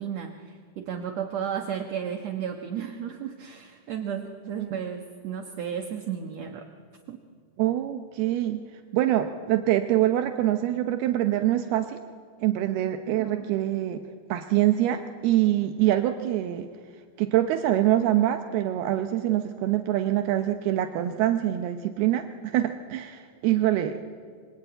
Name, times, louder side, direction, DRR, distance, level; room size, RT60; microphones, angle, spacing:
voice 1, 0.0-6.7 7.1-7.2 13.1-13.5, right 8 dB, 60° right, 4 dB, 2.0 m, -33 dB
voice 2, 7.6-8.6 8.9-12.0 12.4-14.0 14.3-16.7 17.2-24.0, right 13 dB, 80° right, 6 dB, 2.9 m, -25 dB
27.0 x 23.5 x 9.0 m, 2.1 s
omnidirectional pair, 4.5 m